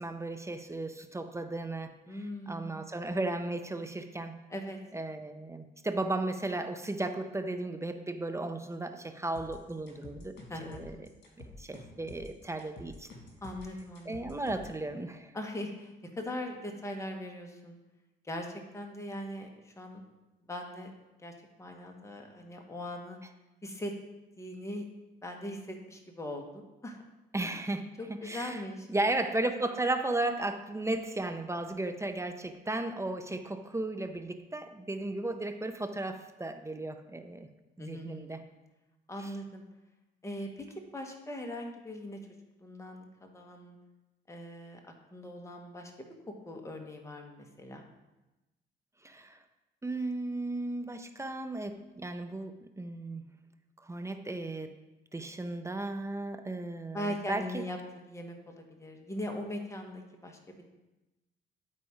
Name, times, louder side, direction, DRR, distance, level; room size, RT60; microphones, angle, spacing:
voice 1, 0.0-4.3 4.9-10.3 10.7-11.0 11.6-13.1 14.1-15.3 27.3-27.8 28.2-28.6 28.9-37.5 37.8-38.4 39.2-39.3 49.0-49.4 49.8-53.2 53.9-54.7 55.1-57.6, right 2 dB, 15° right, 7 dB, 0.6 m, -35 dB
voice 2, 2.1-2.9 4.5-4.8 10.5-10.8 13.4-14.2 15.3-17.8 18.2-20.0 20.5-20.9 21.2-23.2 23.6-23.9 24.4-24.8 25.2-27.0 27.4-27.5 28.0-28.9 37.8-38.4 39.1-39.6 40.2-42.2 42.6-43.8 44.3-44.8 45.1-45.9 46.4-47.8 56.9-57.8 58.1-60.6, left 1 dB, 15° left, 2 dB, 1.2 m, -40 dB
sound 1, 9.4-14.8, left 2 dB, 60° left, 2.0 m, -49 dB
9.9 x 4.2 x 4.9 m, 1.0 s
cardioid pair, 90°, 20 cm